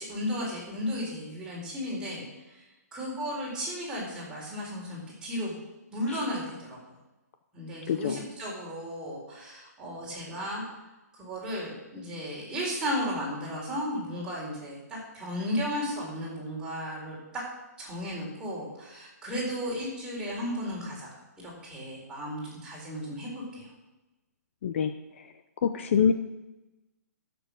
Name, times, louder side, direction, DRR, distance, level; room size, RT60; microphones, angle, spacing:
voice 1, 0.0-2.3 2.5-2.6 2.9-5.5 5.9-6.8 7.5-10.6 11.1-17.4 17.8-23.7, equal, 10° right, -6 dB, 4.3 m, -34 dB
voice 2, 7.9-8.2 24.6-24.9 25.6-26.1, left 7 dB, 45° left, 8 dB, 0.7 m, -25 dB
14.5 x 7.0 x 6.3 m, 1.1 s
hypercardioid pair, 160°, 9 cm